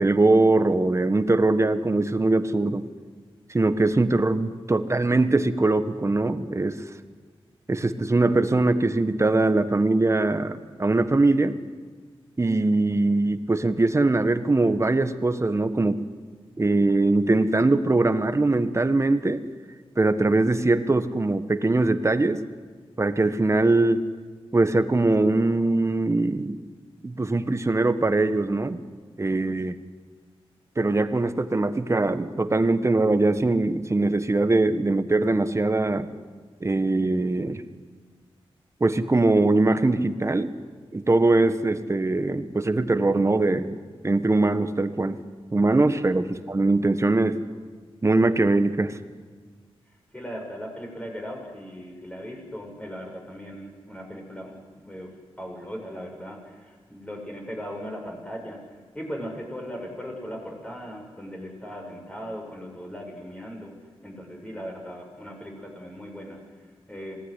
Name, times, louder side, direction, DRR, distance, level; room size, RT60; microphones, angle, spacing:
voice 1, 0.0-2.8 3.5-6.8 7.7-11.6 12.4-16.1 16.6-19.4 20.0-22.4 23.0-24.0 24.5-26.6 27.0-28.8 29.2-29.8 30.8-36.1 36.6-37.6 38.8-40.5 40.9-43.8 44.0-45.2 45.5-47.4 48.0-49.0, right 2 dB, 30° right, 10 dB, 1.4 m, -22 dB
voice 2, 50.1-58.6 58.9-63.7 64.0-67.2, equal, 10° left, 1 dB, 7.2 m, -38 dB
26.0 x 19.0 x 10.0 m, 1.5 s
wide cardioid pair, 80°, 10 cm